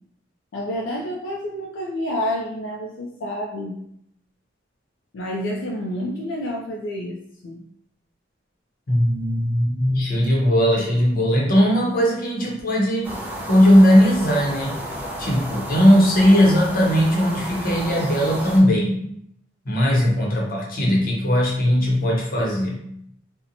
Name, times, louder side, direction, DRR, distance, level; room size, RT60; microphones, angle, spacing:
voice 1, 0.5-3.8 5.1-7.2 7.4-7.6, equal, 80° left, -1 dB, 0.4 m, -29 dB
voice 2, 8.9-13.1 13.5-14.8 15.2-19.0 19.7-22.8, equal, 50° left, -2 dB, 0.7 m, -18 dB
sound 1, 13.0-18.6, right 1 dB, 10° right, 0.5 m, -32 dB
2.8 x 2.1 x 2.6 m, 0.72 s
head